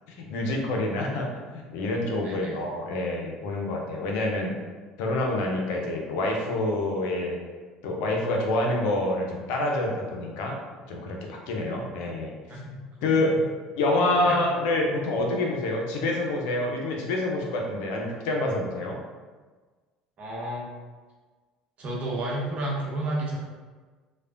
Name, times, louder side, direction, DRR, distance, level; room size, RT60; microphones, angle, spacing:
voice 1, 0.2-4.5 5.0-7.4 7.8-10.6 10.9-12.3 13.0-13.4 13.8-19.0, left 2 dB, 70° left, 1 dB, 0.5 m, -27 dB
voice 2, 2.2-2.6 12.5-12.8 13.1-13.2 13.9-14.4 20.2-20.7 21.8-23.4, right 1 dB, 50° right, -3 dB, 0.9 m, -31 dB
3.2 x 2.2 x 2.4 m, 1.4 s
hypercardioid pair, 70°, 3 cm